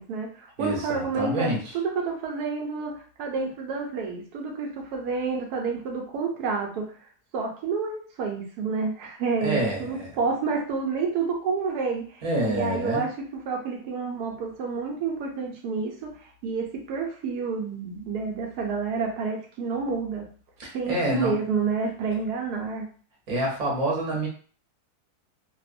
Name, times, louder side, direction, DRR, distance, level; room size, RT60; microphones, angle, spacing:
voice 1, 0.0-2.9 3.2-6.9 7.3-16.1 16.4-20.3 20.7-22.9, right 5 dB, 85° right, 1 dB, 1.2 m, -29 dB
voice 2, 0.6-1.6 9.4-10.2 12.2-13.0 20.6-21.3 23.3-24.3, right 1 dB, 35° right, -3 dB, 0.7 m, -27 dB
2.9 x 2.0 x 2.5 m, 0.42 s
omnidirectional pair, 1.7 m